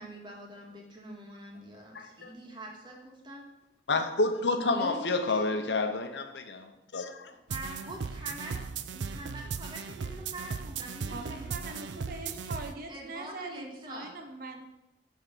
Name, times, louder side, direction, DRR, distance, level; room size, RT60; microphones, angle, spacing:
voice 1, 0.0-3.4 4.5-5.6 7.5-8.7 8.9-14.1, right 1 dB, 25° right, -1 dB, 1.8 m, -44 dB
voice 2, 1.9-2.3 3.9-7.3, left 3 dB, 75° left, 7 dB, 0.8 m, -29 dB
sound 1, 7.5-12.7, right 5 dB, 85° right, 0.5 m, -37 dB
voice 3, 11.1-14.6, right 2 dB, 55° right, 5 dB, 1.0 m, -42 dB
9.4 x 3.7 x 7.0 m, 0.93 s
head